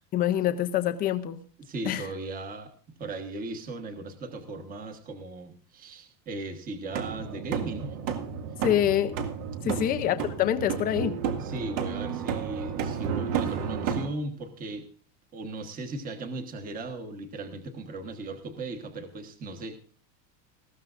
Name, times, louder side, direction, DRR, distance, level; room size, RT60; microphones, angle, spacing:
voice 1, 0.1-1.4 1.9-2.1 8.6-9.3 9.6-11.2, left 11 dB, 20° left, 9 dB, 0.6 m, -26 dB
voice 2, 1.6-2.7 3.0-8.0 9.6-9.9 11.4-14.9 15.3-19.8, right 2 dB, 15° right, 5 dB, 1.3 m, -37 dB
sound 1, 6.9-14.1, right 7 dB, 60° right, 2.1 m, -32 dB
20.0 x 15.0 x 2.5 m, 0.41 s
cardioid pair, 180°, 49 cm